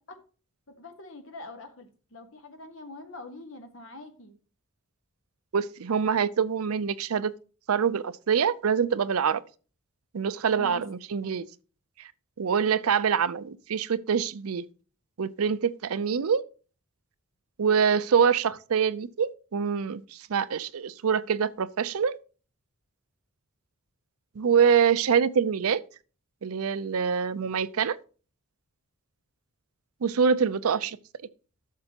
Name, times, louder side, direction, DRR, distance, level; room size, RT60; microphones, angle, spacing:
voice 1, 0.8-4.3 10.6-10.9, left 2 dB, 60° left, 1.3 m, -44 dB
voice 2, 5.5-7.3 7.7-9.4 10.1-11.5 12.4-14.7 15.2-16.4 17.6-22.2 24.4-25.8 26.4-28.0 30.0-31.0, right 7 dB, 80° right, 0.5 m, -25 dB
12.0 x 6.7 x 2.9 m
head